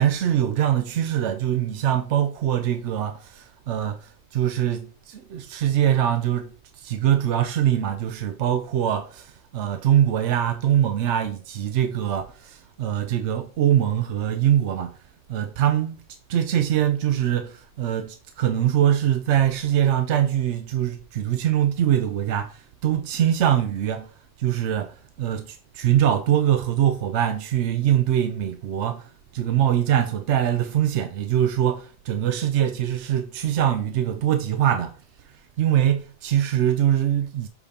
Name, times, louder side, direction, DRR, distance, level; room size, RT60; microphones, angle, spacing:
voice 1, 0.0-14.9 15.3-16.0 16.3-24.1 24.4-35.0 35.6-37.5, right 10 dB, 80° right, 0.9 m, -23 dB
7.1 x 5.1 x 2.8 m
omnidirectional pair, 1.2 m